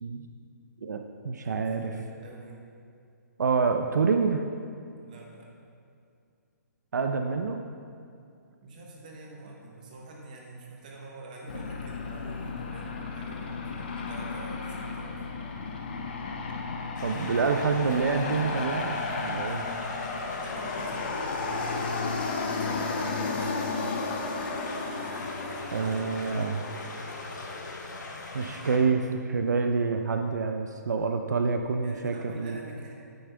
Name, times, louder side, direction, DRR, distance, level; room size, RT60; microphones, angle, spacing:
voice 1, 0.8-1.9 3.4-4.5 6.9-7.6 17.0-19.6 25.7-26.6 28.3-32.6, right 5 dB, 70° right, 5 dB, 0.6 m, -27 dB
voice 2, 1.4-2.6 5.0-5.5 8.6-15.2 20.4-24.5 31.8-32.9, right 2 dB, 25° right, -1 dB, 1.1 m, -46 dB
Aircraft, 11.5-28.9, left 4 dB, 30° left, 0.6 m, -34 dB
sound 1, 17.0-28.8, left 2 dB, 85° left, 1.6 m, -42 dB
9.3 x 8.5 x 3.4 m, 2.4 s
hypercardioid pair, 180°, 10 cm